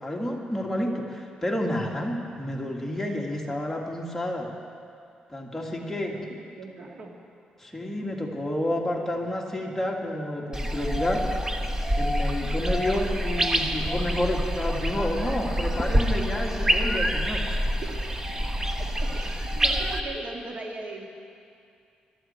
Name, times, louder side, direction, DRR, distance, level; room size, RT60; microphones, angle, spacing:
voice 1, 0.0-4.5 5.3-6.2 7.6-11.2 12.0-17.4, left 1 dB, 10° left, -1 dB, 2.1 m, -30 dB
voice 2, 5.8-7.1 17.8-18.1 19.0-21.1, right 3 dB, 55° right, 1 dB, 1.8 m, -39 dB
sound 1, 10.5-20.0, equal, 20° right, 1.1 m, -26 dB
23.0 x 13.0 x 4.4 m, 2.4 s
cardioid pair, 105°, 3 cm